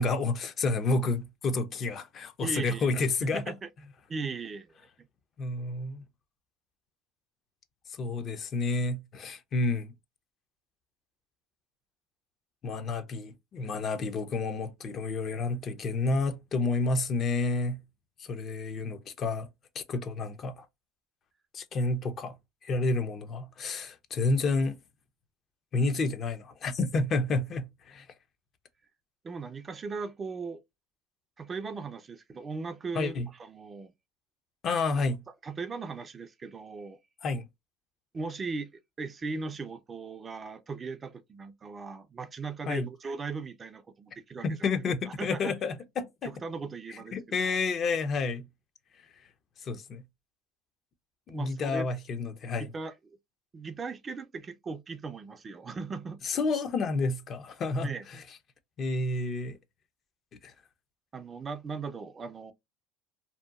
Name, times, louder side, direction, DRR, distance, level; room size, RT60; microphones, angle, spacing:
voice 1, 0.0-3.5 5.4-6.0 7.9-9.9 12.6-17.8 18.2-19.5 19.7-20.7 21.5-22.3 22.6-24.8 25.7-28.1 32.9-33.3 34.6-35.2 37.2-37.5 42.7-42.9 44.4-46.3 47.1-48.5 49.6-50.0 51.3-52.7 56.2-58.2 58.8-59.6 60.4-60.5, left 3 dB, 35° left, 0.5 m, -30 dB
voice 2, 2.4-2.9 3.3-3.7 4.1-4.9 29.2-30.6 31.4-33.9 35.4-37.0 38.1-38.7 39.0-44.5 45.0-45.5 46.2-47.1 47.4-47.5 51.3-51.9 52.6-52.9 53.5-56.2 57.8-58.0 61.1-62.5, right 4 dB, 25° right, 0.3 m, -38 dB
2.7 x 2.2 x 2.3 m
supercardioid pair, 130°, 0 cm